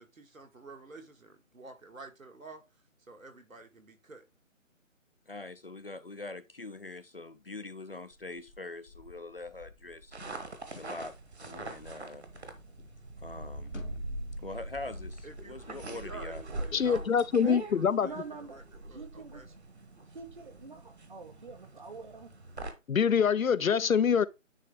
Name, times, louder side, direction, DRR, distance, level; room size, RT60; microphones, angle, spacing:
voice 1, 0.0-2.6 3.0-4.3 15.2-19.5, right 3 dB, 80° right, 1.8 m, -49 dB
voice 2, 5.3-10.2 10.7-11.1 11.4-12.3 13.2-13.7 14.4-16.4 16.7-16.9, left 2 dB, 45° left, 0.4 m, -43 dB
sound 1, 8.1-12.5 12.8-15.3, left 3 dB, 60° left, 1.4 m, -51 dB
sound 2, 10.1-22.7, right 2 dB, 55° right, 1.3 m, -42 dB
voice 3, 16.7-18.1 22.9-24.3, left 7 dB, 85° left, 0.6 m, -25 dB
voice 4, 18.0-19.4 20.1-22.3, right 4 dB, 35° right, 1.0 m, -46 dB
9.8 x 3.3 x 3.4 m
figure-of-eight pair, 160°, 40 cm